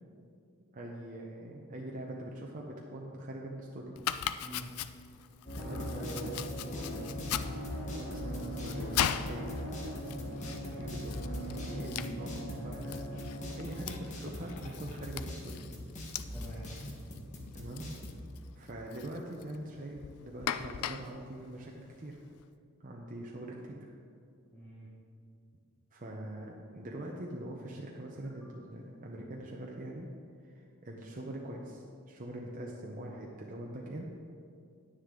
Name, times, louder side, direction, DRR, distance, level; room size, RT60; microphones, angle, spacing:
voice 1, 0.7-4.1 5.5-5.9 7.9-8.9 9.2-9.6 10.8-11.2 11.6-13.1 13.5-15.6 17.5-17.9 18.5-22.2 22.8-23.8 25.9-30.1 30.5-34.0, right 1 dB, 35° right, -2 dB, 0.8 m, -43 dB
Domestic sounds home sounds, 3.9-22.4, left 9 dB, 90° left, 0.4 m, -41 dB
voice 2, 4.4-4.7 5.6-7.2 10.1-10.8 11.8-13.1 16.3-16.6 24.5-24.9, right 1 dB, 10° left, -10 dB, 1.8 m, -45 dB
sound 1, 5.5-18.2, equal, 35° left, 1.4 m, -40 dB
9.8 x 9.8 x 3.8 m, 2.3 s
head